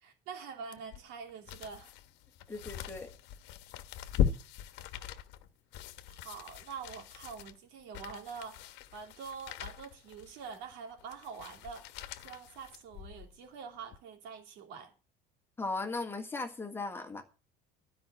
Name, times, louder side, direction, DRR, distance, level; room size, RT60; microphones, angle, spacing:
voice 1, 0.0-1.9 6.1-14.9, right 6 dB, 70° right, 3.0 m, -46 dB
sound 1, 0.7-13.4 13.9-14.0, left 9 dB, 65° left, 1.1 m, -39 dB
voice 2, 2.5-3.1 15.6-17.2, left 3 dB, 10° left, 1.5 m, -37 dB
13.0 x 5.5 x 8.4 m
cardioid pair, 165°, 19 cm